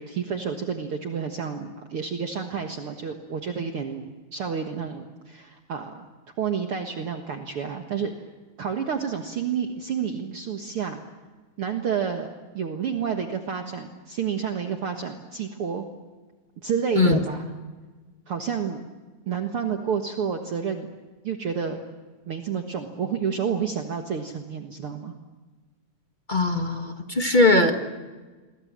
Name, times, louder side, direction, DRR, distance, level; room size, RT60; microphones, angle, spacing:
voice 1, 0.0-6.1 6.4-8.1 8.6-11.0 11.6-15.9 16.6-17.5 18.3-18.8 19.3-20.9 21.2-21.8 22.3-25.1, right 7 dB, 55° right, 4 dB, 2.2 m, -30 dB
voice 2, 26.3-27.8, left 2 dB, 20° left, 5 dB, 1.4 m, -20 dB
29.0 x 23.0 x 7.5 m, 1.3 s
omnidirectional pair, 3.4 m